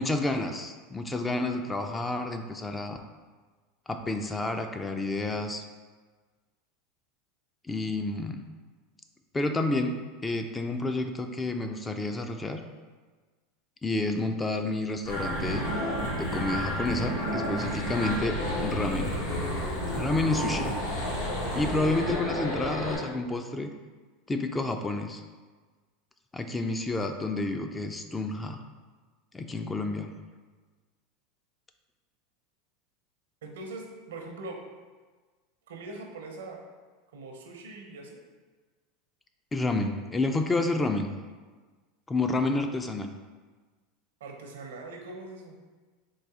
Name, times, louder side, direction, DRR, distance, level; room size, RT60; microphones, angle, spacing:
voice 1, 0.0-3.0 3.9-5.6 7.6-8.4 9.3-12.6 13.8-15.6 16.2-19.1 19.9-20.7 21.5-23.7 24.3-25.2 26.3-28.6 29.3-30.1 39.5-41.1 42.1-43.1, left 2 dB, 15° left, 6 dB, 0.3 m, -30 dB
sound 1, 15.0-22.9, equal, 75° left, 1.3 m, -31 dB
voice 2, 33.4-34.6 35.7-36.6 37.1-38.2 44.2-45.6, right 2 dB, 80° right, 2 dB, 0.6 m, -42 dB
3.9 x 2.6 x 3.6 m, 1.4 s
hypercardioid pair, 95°, 0 cm